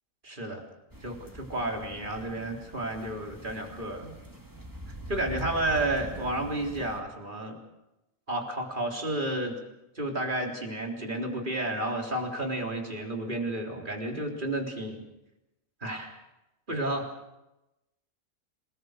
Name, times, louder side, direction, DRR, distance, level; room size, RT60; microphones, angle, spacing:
voice 1, 0.2-0.6 1.0-4.1 5.1-7.6 8.3-9.6 10.0-15.1 15.8-16.2 16.7-17.1, right 1 dB, 35° right, 1 dB, 3.8 m, -31 dB
sound 1, 0.9-7.0, equal, 15° right, 2.1 m, -43 dB
27.0 x 19.5 x 6.6 m, 0.94 s
omnidirectional pair, 1.4 m